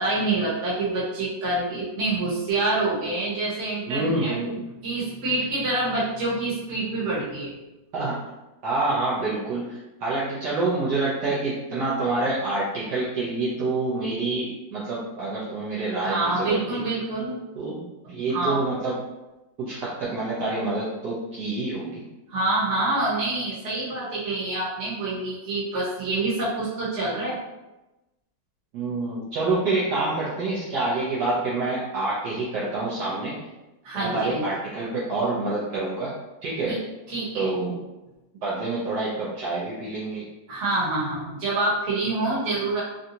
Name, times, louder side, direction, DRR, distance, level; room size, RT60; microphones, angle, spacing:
voice 1, 0.0-4.3 4.8-7.5 16.0-17.5 18.3-18.6 22.3-27.4 33.8-34.5 36.7-36.8 37.1-37.5 40.5-42.8, right 2 dB, 45° right, -7 dB, 1.3 m, -26 dB
voice 2, 3.9-4.6 7.9-8.2 8.6-16.8 17.5-19.0 19.6-22.1 28.7-33.4 33.9-36.1 36.4-36.9 37.3-37.8 38.4-40.3, right 2 dB, 70° right, -8 dB, 1.2 m, -27 dB
3.8 x 2.3 x 2.7 m, 1.0 s
omnidirectional pair, 2.0 m